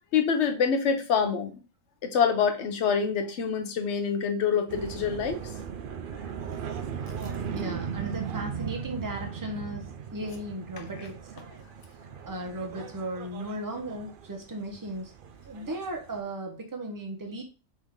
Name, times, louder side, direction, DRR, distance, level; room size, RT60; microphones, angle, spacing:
voice 1, 0.1-1.5 2.0-5.4, left 6 dB, 55° left, 0.9 m, -26 dB
sound 1, 4.7-16.2, right 7 dB, 75° right, 0.4 m, -38 dB
voice 2, 7.5-11.5 12.3-15.1 15.5-17.4, right 1 dB, 20° right, 0.6 m, -36 dB
4.2 x 3.5 x 3.5 m
omnidirectional pair, 1.6 m